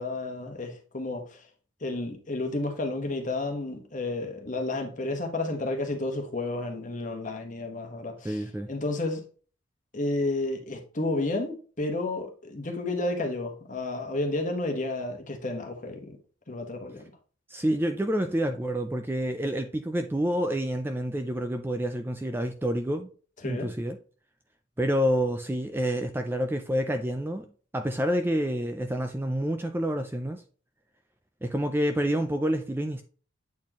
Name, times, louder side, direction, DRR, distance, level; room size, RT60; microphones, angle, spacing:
voice 1, 0.0-1.4 1.8-9.2 9.9-16.2 16.5-17.0 23.4-23.7, left 2 dB, 35° left, 1.2 m, -31 dB
voice 2, 8.2-8.7 17.5-23.1 23.4-24.0 24.8-27.5 27.7-30.4 31.4-33.0, equal, 10° right, 0.3 m, -28 dB
8.3 x 4.3 x 2.9 m
head